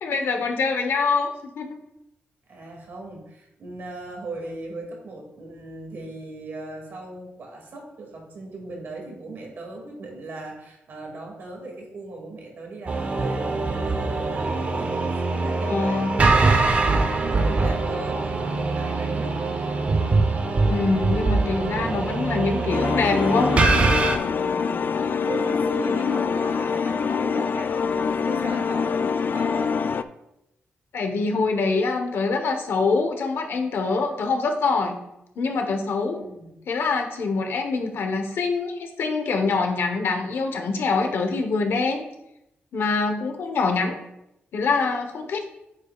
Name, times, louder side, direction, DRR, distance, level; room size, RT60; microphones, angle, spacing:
voice 1, 0.0-1.7 15.7-16.2 20.7-23.5 30.9-35.0 35.4-36.2 36.7-42.0 42.7-43.9 44.5-45.5, left 4 dB, 75° left, 4 dB, 1.1 m, -24 dB
voice 2, 2.5-19.6 24.4-29.7 36.1-36.5, right 2 dB, 60° right, 0 dB, 2.3 m, -38 dB
sound 1, 12.9-24.2, right 3 dB, 35° right, 0.7 m, -23 dB
sound 2, 22.7-30.0, left 6 dB, 50° left, 0.3 m, -25 dB
8.3 x 8.2 x 2.4 m, 0.85 s
wide cardioid pair, 160°, 4 cm